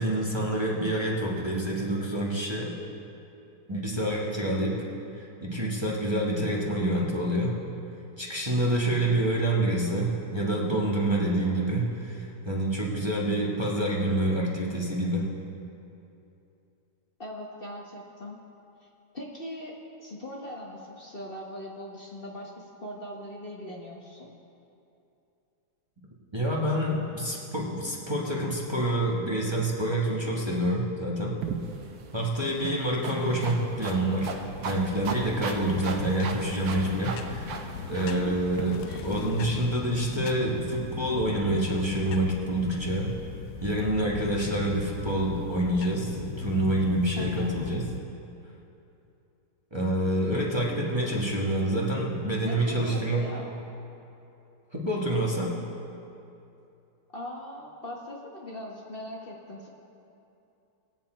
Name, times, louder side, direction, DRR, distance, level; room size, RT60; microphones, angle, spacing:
voice 1, 0.0-2.7 3.7-4.8 5.2-7.6 8.2-15.3 26.3-31.3 32.1-34.3 34.6-43.2 43.6-47.9 49.7-53.3 54.7-55.5, right 1 dB, 15° right, -4 dB, 1.4 m, -27 dB
voice 2, 17.2-18.4 19.1-24.3 38.0-38.4 38.9-39.1 47.2-47.6 52.4-53.5 57.1-59.7, left 1 dB, 40° left, -3 dB, 1.3 m, -40 dB
sound 1, 31.4-38.6, right 5 dB, 70° right, 1.3 m, -37 dB
sound 2, 33.6-48.0, left 6 dB, 85° left, 1.2 m, -39 dB
19.5 x 8.4 x 4.4 m, 2.8 s
omnidirectional pair, 1.7 m